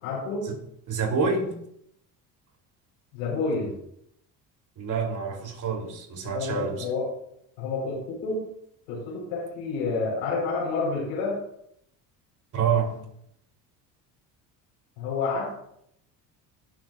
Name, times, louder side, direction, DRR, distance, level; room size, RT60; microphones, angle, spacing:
voice 1, 0.0-0.4 3.1-3.7 6.2-7.1 7.6-8.4 8.9-11.3 15.0-15.5, left 4 dB, 90° left, 4.4 m, -29 dB
voice 2, 0.9-1.6 4.8-6.9 12.5-13.0, right 5 dB, 45° right, 3.2 m, -27 dB
18.0 x 7.7 x 2.5 m
supercardioid pair, 80°, 41 cm